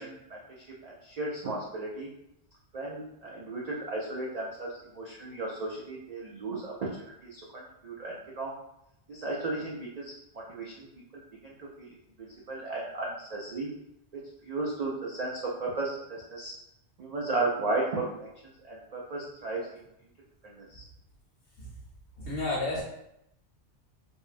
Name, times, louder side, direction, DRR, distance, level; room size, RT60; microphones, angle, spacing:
voice 1, 0.0-2.1 2.7-6.7 7.2-8.5 9.1-10.9 11.4-13.7 14.4-16.5 17.0-18.3 18.6-19.6 20.6-20.8, right 2 dB, 85° right, -3 dB, 0.3 m, -35 dB
voice 2, 22.2-22.8, left 2 dB, 65° left, -7 dB, 1.0 m, -31 dB
3.5 x 2.1 x 2.5 m, 0.82 s
omnidirectional pair, 1.2 m